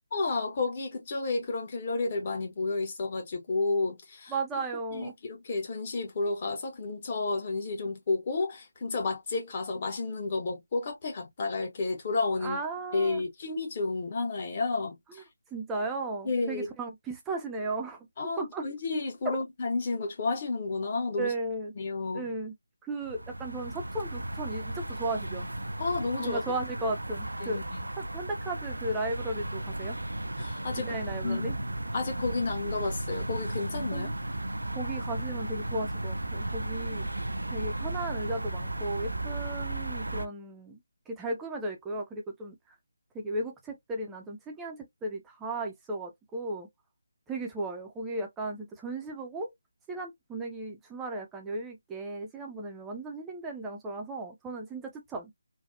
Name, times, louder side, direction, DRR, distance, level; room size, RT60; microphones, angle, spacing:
voice 1, 0.1-4.3 4.9-12.6 12.9-15.2 16.2-16.7 18.2-21.3 21.8-22.2 25.8-26.4 27.4-27.8 30.4-30.9 31.2-31.5 31.9-34.1, left 3 dB, 30° left, 1.1 m, -31 dB
voice 2, 4.3-5.1 12.4-13.2 15.1-15.2 15.5-18.0 18.4-18.7 21.2-21.7 22.1-22.5 22.9-25.5 26.2-27.6 27.9-30.0 30.8-31.6 33.9-34.1 34.8-37.1 37.5-40.8 41.1-42.6 43.1-46.7 47.3-49.5 49.9-55.3, right 2 dB, 5° right, 0.6 m, -35 dB
sound 1, 23.0-40.3, right 1 dB, 70° right, 0.4 m, -35 dB
3.4 x 2.3 x 2.3 m
figure-of-eight pair, 155°, 0 cm